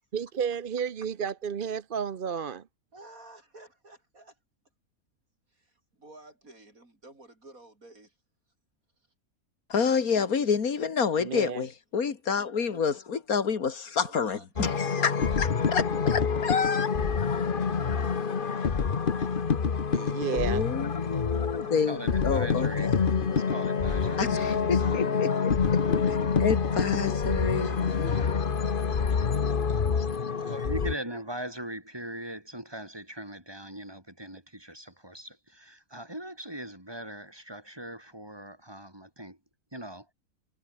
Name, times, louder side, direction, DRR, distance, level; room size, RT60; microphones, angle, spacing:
voice 1, 0.1-2.6 11.2-11.6 19.9-20.7, right 7 dB, 45° right, 0.9 m, -32 dB
voice 2, 2.9-4.4 5.5-8.1 11.2-11.3 12.7-12.8 14.0-14.7 15.2-19.4 21.1-21.8 24.0-27.1 27.6-31.2, right 2 dB, 75° right, 7.0 m, -52 dB
voice 3, 9.7-15.1 15.4-15.8 16.1-16.9 20.3-22.0 22.2-22.9 24.2-24.4 24.7-25.5 26.4-27.7, left 6 dB, 90° left, 2.3 m, -28 dB
sound 1, 14.6-30.9, left 6 dB, 40° left, 1.2 m, -27 dB
voice 4, 21.9-22.9 23.3-24.5 30.5-39.4 39.7-40.0, right 1 dB, 15° right, 5.7 m, -40 dB
omnidirectional pair, 1.5 m